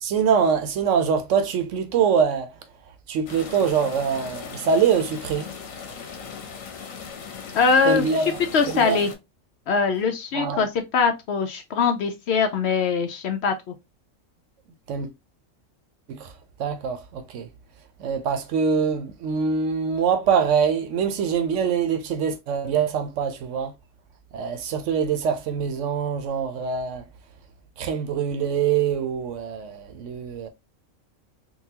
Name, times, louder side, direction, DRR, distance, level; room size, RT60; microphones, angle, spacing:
voice 1, 0.0-2.5 3.1-5.5 7.8-8.3 8.7-9.0 10.3-10.7 14.9-15.1 16.1-16.3 16.6-17.5 18.0-23.7 24.3-27.0 27.8-30.5, right 6 dB, 70° right, 0.9 m, -24 dB
sound 1, 3.3-9.1, left 6 dB, 80° left, 1.2 m, -38 dB
voice 2, 7.5-9.1 9.7-13.7, left 5 dB, 65° left, 0.7 m, -22 dB
3.8 x 2.3 x 2.8 m
omnidirectional pair, 1.4 m